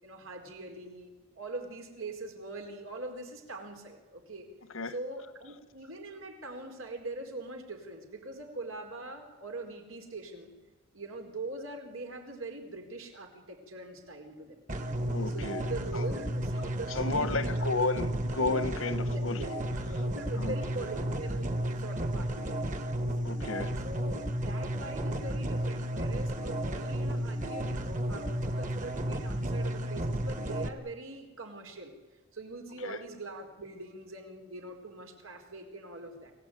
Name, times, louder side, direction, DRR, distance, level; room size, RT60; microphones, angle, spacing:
voice 1, 0.0-4.5 4.8-10.5 10.9-14.6 15.1-17.9 19.0-19.5 19.8-23.1 23.8-31.9 32.3-36.3, right 2 dB, 90° right, 4.4 m, -42 dB
sound 1, 14.7-30.7, right 1 dB, 40° right, 1.6 m, -33 dB
voice 2, 15.1-15.6 17.0-19.4 20.4-20.5 23.2-23.8 32.8-33.0, left 3 dB, 80° left, 1.4 m, -32 dB
26.5 x 16.0 x 9.4 m
head